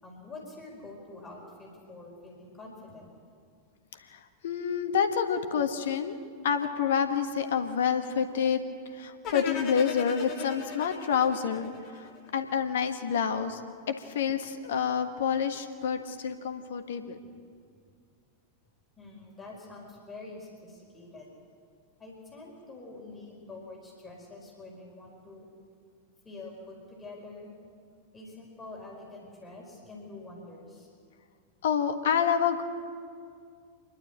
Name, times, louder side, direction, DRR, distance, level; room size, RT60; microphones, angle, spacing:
voice 1, 0.0-3.1 19.0-21.3 22.0-25.5 26.2-27.5 28.1-30.9, left 2 dB, 15° left, -2 dB, 4.8 m, -46 dB
voice 2, 4.1-6.2 6.4-8.6 8.9-13.6 14.0-17.2 31.6-32.6, left 7 dB, 60° left, 8 dB, 1.5 m, -28 dB
sound 1, 9.2-12.4, left 6 dB, 35° left, 2.1 m, -38 dB
27.5 x 11.5 x 8.6 m, 2.2 s
figure-of-eight pair, 90°, 0 cm